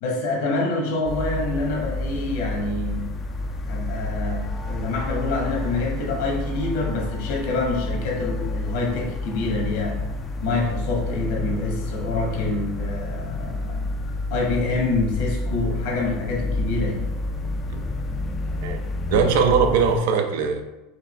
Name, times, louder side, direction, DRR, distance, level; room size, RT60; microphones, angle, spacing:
voice 1, 0.0-3.1 3.7-10.0 10.4-13.8 14.3-17.1, left 3 dB, 70° left, -1 dB, 1.2 m, -26 dB
sound 1, 1.0-20.0, left 2 dB, 20° left, 0.3 m, -29 dB
voice 2, 19.1-20.6, right 6 dB, 75° right, 5 dB, 0.5 m, -20 dB
4.7 x 2.6 x 3.2 m, 1.0 s
supercardioid pair, 150°, 0 cm